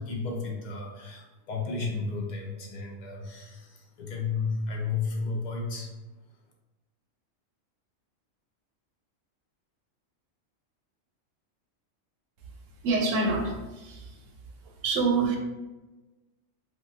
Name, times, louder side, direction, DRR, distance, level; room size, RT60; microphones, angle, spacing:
voice 1, 0.0-5.9, left 4 dB, 70° left, -1 dB, 0.4 m, -33 dB
voice 2, 12.8-14.2 14.6-15.4, right 3 dB, 75° right, 2 dB, 0.9 m, -27 dB
3.6 x 2.2 x 2.5 m, 1.1 s
omnidirectional pair, 1.3 m